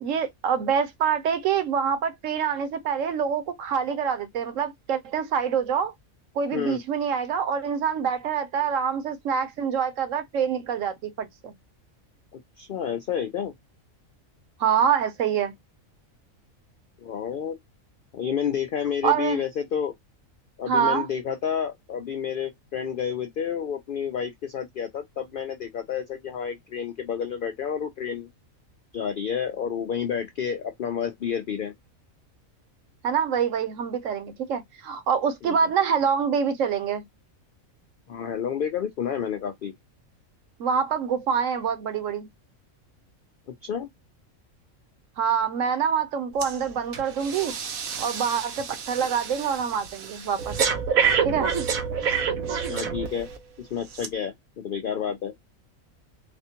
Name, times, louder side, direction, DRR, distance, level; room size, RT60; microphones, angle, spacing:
voice 1, 0.0-5.9 6.3-11.5 14.6-15.5 19.0-19.4 20.7-21.1 33.0-37.0 40.6-42.3 45.2-47.5 48.0-50.6 51.2-51.5, right 7 dB, 70° right, 1.0 m, -26 dB
voice 2, 12.6-13.5 17.0-17.6 18.1-19.9 20.6-28.3 28.9-31.7 35.4-35.6 38.1-39.7 43.6-43.9 52.7-53.3 53.6-55.3, left 8 dB, 75° left, 0.4 m, -30 dB
Breathing, 46.4-46.6 46.9-53.4 53.9-54.1, right 6 dB, 85° right, 1.2 m, -28 dB
4.2 x 2.2 x 2.8 m
omnidirectional pair, 1.4 m